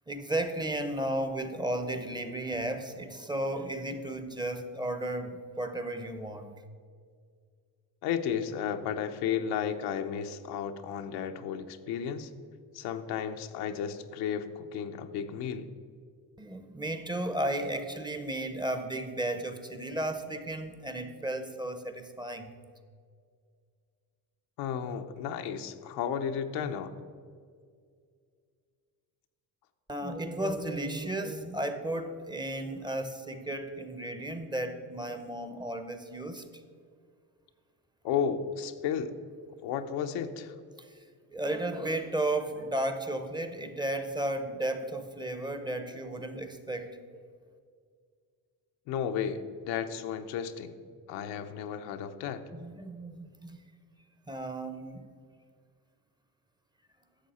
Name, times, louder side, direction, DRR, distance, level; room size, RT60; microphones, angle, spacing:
voice 1, 0.1-6.5 16.4-22.5 29.9-36.4 40.8-41.0 41.3-47.2 52.5-53.6 54.3-55.0, right 1 dB, 10° right, 8 dB, 0.7 m, -34 dB
voice 2, 8.0-12.3 12.7-15.7 24.6-26.9 38.0-39.1 39.6-40.5 48.9-50.7 51.1-52.4, left 8 dB, 85° left, 7 dB, 0.8 m, -33 dB
11.0 x 7.2 x 4.2 m, 2.1 s
cardioid pair, 115°, 39 cm